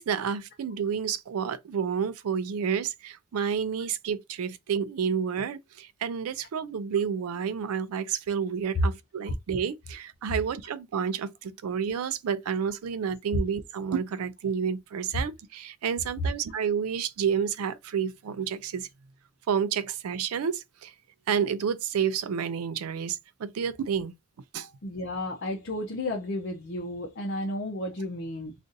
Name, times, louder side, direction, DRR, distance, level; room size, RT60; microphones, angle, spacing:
voice 1, 0.0-18.9 19.5-20.9 21.3-24.1 24.5-24.7, right 7 dB, 85° right, 0.4 m, -30 dB
voice 2, 24.8-28.5, left 1 dB, 50° left, 0.6 m, -33 dB
2.6 x 2.5 x 3.8 m
head